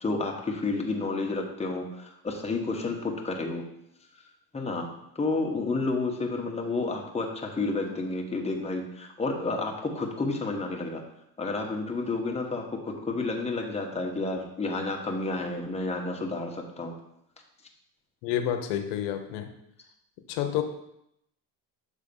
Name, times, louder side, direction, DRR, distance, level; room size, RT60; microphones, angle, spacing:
voice 1, 0.0-3.6 4.5-4.9 5.1-11.0 11.4-16.9, left 3 dB, 15° left, 1 dB, 1.2 m, -30 dB
voice 2, 18.2-19.5 20.3-20.6, left 10 dB, 90° left, 6 dB, 0.8 m, -29 dB
6.7 x 3.7 x 5.3 m, 0.80 s
supercardioid pair, 100°, 45 cm